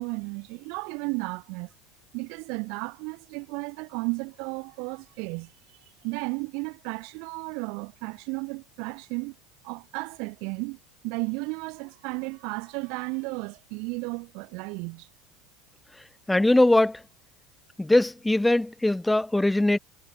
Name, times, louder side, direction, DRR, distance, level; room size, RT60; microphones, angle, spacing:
voice 1, 0.0-1.7 2.1-5.5 6.0-9.3 9.6-10.8 11.0-15.1, right 33 dB, 65° right, 6.9 m, -34 dB
voice 2, 16.3-17.0 17.8-19.8, left 1 dB, 5° left, 1.5 m, -21 dB
supercardioid pair, 125°, 0 cm